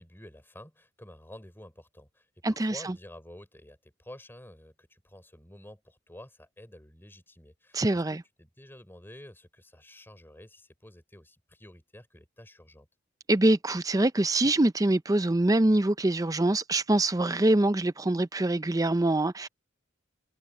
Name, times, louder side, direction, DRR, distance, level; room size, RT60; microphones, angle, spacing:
voice 1, 0.0-12.9, left 1 dB, 10° left, 3.6 m, -50 dB
voice 2, 2.4-2.9 7.7-8.2 13.3-19.5, right 1 dB, 15° right, 0.5 m, -24 dB
head